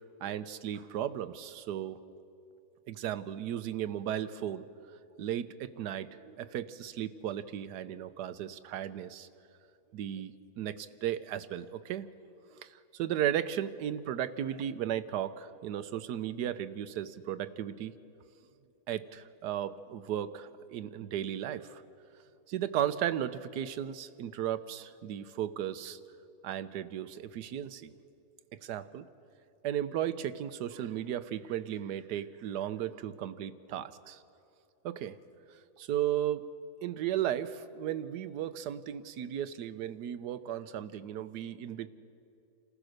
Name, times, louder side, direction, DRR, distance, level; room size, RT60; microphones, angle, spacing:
voice 1, 0.2-2.0 2.9-4.6 5.2-9.3 9.9-12.1 12.6-17.9 18.9-21.8 22.5-26.0 26.4-27.9 28.6-29.1 29.6-34.2 34.8-35.2 35.8-36.4 36.8-41.9, right 10 dB, 85° right, 13 dB, 1.3 m, -35 dB
28.0 x 15.0 x 6.5 m, 2.6 s
omnidirectional pair, 1.7 m